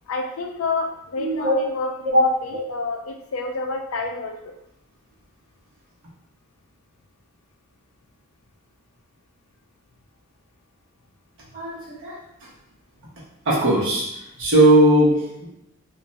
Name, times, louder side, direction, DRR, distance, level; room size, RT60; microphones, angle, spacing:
voice 1, 0.1-4.5, left 3 dB, 75° left, 4 dB, 0.4 m, -29 dB
voice 2, 1.2-1.6 2.0-2.2 11.5-12.2 13.5-14.1 14.4-15.5, right 1 dB, 60° right, -6 dB, 0.9 m, -18 dB
2.4 x 2.2 x 3.9 m, 0.85 s
head